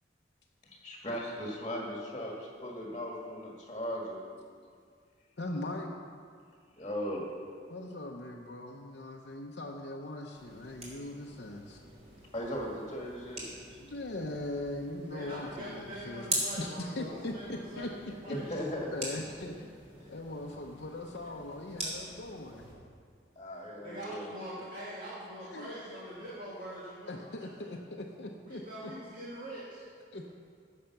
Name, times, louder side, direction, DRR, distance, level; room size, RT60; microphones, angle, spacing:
voice 1, 0.6-4.2 6.8-7.3 12.3-13.8 18.3-19.2 20.0-20.1 23.4-24.3, equal, 25° left, -2 dB, 1.6 m, -38 dB
voice 2, 5.4-5.9 7.7-11.8 13.8-16.3 16.6-17.9 18.3-19.7 20.1-22.7 25.4-25.7 27.1-28.9 30.1-30.3, left 1 dB, 65° left, 0 dB, 0.8 m, -40 dB
sound 1, 10.3-22.7, right 1 dB, 35° right, 3.2 m, -43 dB
voice 3, 15.1-18.4 23.8-27.7 28.4-29.8, equal, 55° right, -8 dB, 2.1 m, -43 dB
15.5 x 6.6 x 5.9 m, 2.1 s
head